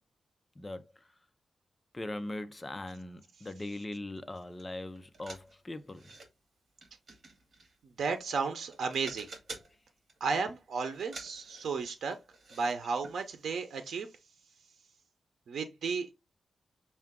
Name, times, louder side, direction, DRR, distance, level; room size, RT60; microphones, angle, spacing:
voice 1, 1.9-6.0, left 1 dB, 20° left, 0.5 m, -40 dB
sound 1, 4.6-4.7 5.0-6.3 6.8-8.4 8.7-9.8 10.1-10.5 10.9-12.8 13.0-13.2 13.5-13.6, right 3 dB, 55° right, 1.7 m, -49 dB
voice 2, 8.0-9.3 10.2-12.2 12.5-14.1 15.5-16.1, right 5 dB, 90° right, 0.7 m, -33 dB
5.5 x 2.4 x 3.6 m
wide cardioid pair, 120°, 0 cm